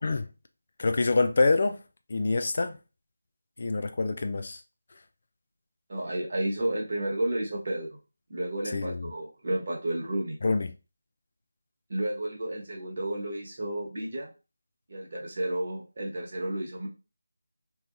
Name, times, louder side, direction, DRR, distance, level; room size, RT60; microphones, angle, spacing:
voice 1, 0.8-1.8 2.1-2.8 3.6-4.6 8.7-9.1 10.4-10.7, left 3 dB, 40° left, 0.3 m, -26 dB
voice 2, 5.9-8.0 8.3-10.4 11.9-14.3 14.9-16.9, right 1 dB, 40° right, 1.1 m, -31 dB
4.3 x 2.8 x 2.5 m
figure-of-eight pair, 160°, 0 cm